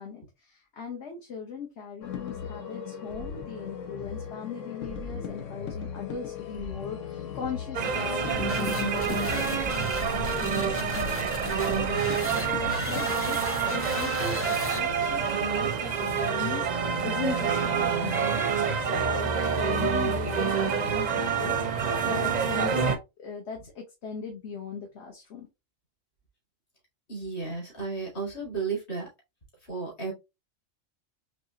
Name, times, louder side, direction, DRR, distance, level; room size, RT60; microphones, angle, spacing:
voice 1, 0.0-25.5, left 6 dB, 65° left, 1 dB, 1.3 m, -39 dB
sound 1, 2.0-13.2, left 7 dB, 90° left, 1.2 m, -38 dB
sound 2, 7.7-23.0, right 6 dB, 50° right, 0.5 m, -27 dB
sound 3, 8.2-15.2, equal, 20° left, 0.4 m, -35 dB
voice 2, 27.1-29.1 29.7-30.1, right 4 dB, 45° left, -1 dB, 2.1 m, -33 dB
4.2 x 3.2 x 2.7 m, 0.23 s
omnidirectional pair, 1.3 m